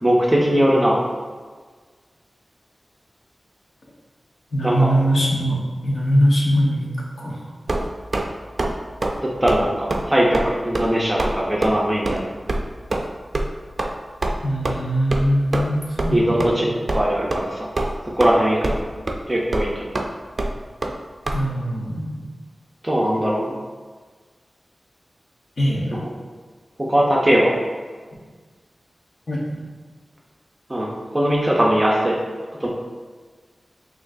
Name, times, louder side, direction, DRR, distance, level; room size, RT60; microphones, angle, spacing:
voice 1, 0.0-1.0 4.6-4.9 9.2-12.3 16.1-16.7 16.9-17.7 18.2-18.8 19.3-19.9 22.8-23.6 25.9-26.0 26.9-27.6 30.7-32.2 32.6-32.7, equal, 20° right, -3 dB, 0.7 m, -20 dB
voice 2, 4.5-6.9 7.2-7.5 14.4-16.6 21.3-22.2 25.6-26.0 29.3-29.6, equal, 60° left, -4 dB, 1.1 m, -21 dB
sound 1, 7.7-8.3 8.6-8.7 9.0-9.2 9.5-9.6 9.9-10.0 10.3-10.5 10.7-10.9 11.2-11.3 11.6-11.7 12.1-12.2 12.5-12.6 12.9-13.1 13.3-13.5 13.8-13.9 14.2-14.3 14.6-14.7 15.1-15.3 15.5-15.7 16.0-16.1 16.4-16.5 16.9-17.0 17.3-17.5 17.8-18.3 18.6-18.8 19.1-19.2 19.5-19.7 19.9-20.1 20.4-20.5 20.8-20.9 21.3-21.4, right 2 dB, 50° right, 0.4 m, -24 dB
6.2 x 3.0 x 2.6 m, 1.5 s
wide cardioid pair, 85°, 0 cm